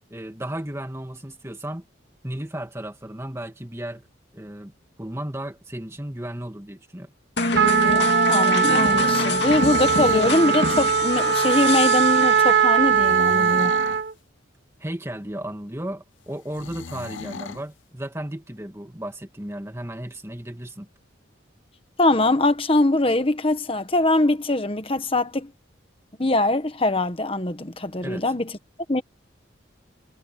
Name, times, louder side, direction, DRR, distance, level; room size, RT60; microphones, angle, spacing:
voice 1, 0.1-1.8 2.2-4.1 4.3-4.7 5.0-7.1 14.8-20.9 28.0-28.2, right 1 dB, 15° right, 2.4 m, -34 dB
sound 1, 7.4-13.0, left 3 dB, 60° left, 2.5 m, -27 dB
Trumpet, 7.5-14.1, right 6 dB, 60° right, 1.0 m, -20 dB
voice 2, 8.3-13.7 22.0-25.5 26.2-28.5 28.9-29.0, left 2 dB, 30° left, 1.3 m, -22 dB
sound 2, 9.2-10.4 12.8-14.0 16.5-17.6, left 4 dB, 75° left, 0.8 m, -36 dB
head